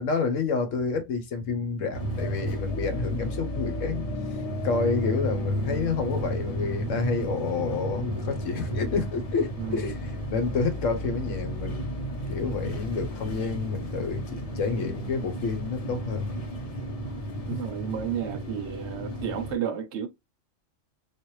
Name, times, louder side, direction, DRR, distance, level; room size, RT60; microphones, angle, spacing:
voice 1, 0.0-4.0 4.6-11.9 12.3-16.3 17.5-17.6, left 5 dB, 80° left, 1.2 m, -29 dB
sound 1, 1.9-19.5, equal, 35° left, 0.7 m, -33 dB
voice 2, 9.6-9.9 17.5-20.1, right 8 dB, 70° right, 0.8 m, -32 dB
3.3 x 2.5 x 3.0 m
omnidirectional pair, 1.3 m